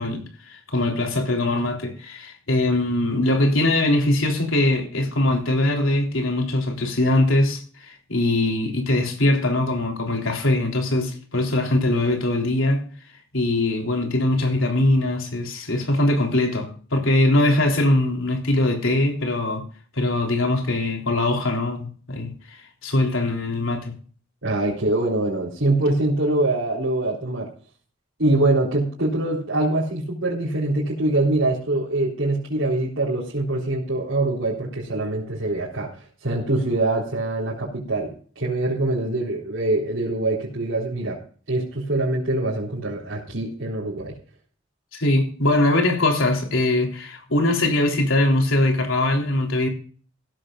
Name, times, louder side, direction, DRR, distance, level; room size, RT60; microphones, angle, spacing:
voice 1, 0.0-12.8 13.3-19.6 19.9-24.0 44.9-49.7, left 1 dB, 80° left, 3.5 m, -22 dB
voice 2, 24.4-27.5 28.2-35.9 36.2-41.2 41.5-44.1, right 2 dB, 70° right, 4.0 m, -24 dB
16.0 x 13.5 x 2.5 m
head